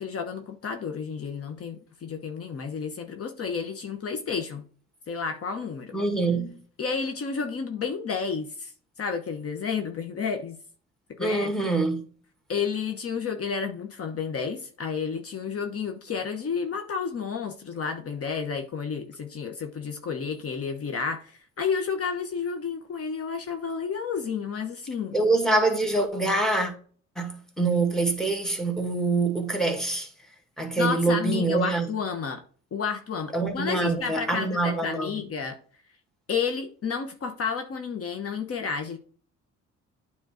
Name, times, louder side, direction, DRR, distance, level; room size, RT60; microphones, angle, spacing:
voice 1, 0.0-4.7 5.1-6.0 6.8-8.7 9.0-10.6 11.1-11.5 12.5-25.2 30.8-32.4 32.7-35.6 36.3-39.0, left 6 dB, 50° left, 1.1 m, -31 dB
voice 2, 5.9-6.6 11.2-12.0 25.1-26.7 27.2-30.1 30.6-31.9 33.3-35.2, right 3 dB, ahead, 1.9 m, -25 dB
9.2 x 3.6 x 4.9 m
cardioid pair, 90°, 30 cm